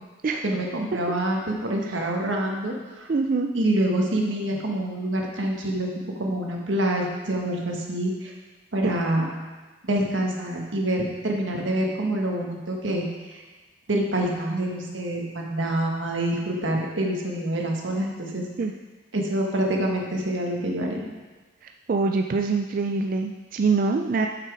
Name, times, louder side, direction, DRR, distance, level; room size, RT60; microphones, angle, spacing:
voice 1, 0.4-3.1 3.5-5.9 6.2-8.3 8.7-9.2 9.8-13.4 13.9-18.4 19.1-21.1, right 1 dB, 90° right, 0 dB, 1.4 m, -26 dB
voice 2, 3.1-3.5 8.8-9.0 18.6-18.7 21.6-24.3, right 4 dB, 45° right, 4 dB, 0.3 m, -25 dB
8.0 x 5.9 x 4.7 m, 1.3 s
head